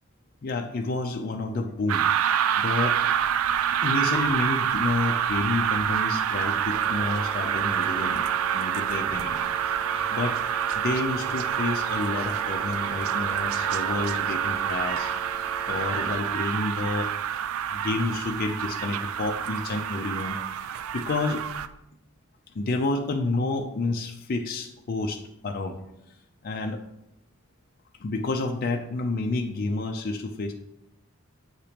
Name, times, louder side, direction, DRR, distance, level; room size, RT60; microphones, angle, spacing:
voice 1, 0.4-2.1 2.6-3.0 3.7-8.3 8.5-9.4 10.1-10.4 10.7-15.1 15.7-17.1 17.7-20.4 20.9-21.4 22.5-25.8 26.4-26.8 28.0-30.5, left 2 dB, 45° left, 4 dB, 0.5 m, -29 dB
sound 1, 1.9-21.7, right 9 dB, 80° right, 0.3 m, -27 dB
sound 2, 6.7-16.2, right 3 dB, 30° right, 0.7 m, -41 dB
8.0 x 2.9 x 5.0 m, 0.85 s
head